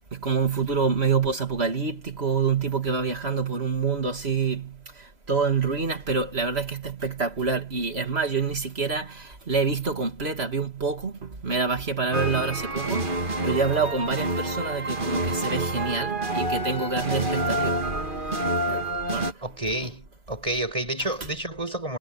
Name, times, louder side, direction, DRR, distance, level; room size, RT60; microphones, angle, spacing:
voice 1, 0.1-19.4, right 5 dB, 90° right, 3.0 m, -27 dB
sound 1, 12.1-19.3, right 1 dB, 55° right, 2.3 m, -28 dB
voice 2, 19.4-22.0, right 1 dB, 35° right, 5.9 m, -30 dB
omnidirectional pair, 1.0 m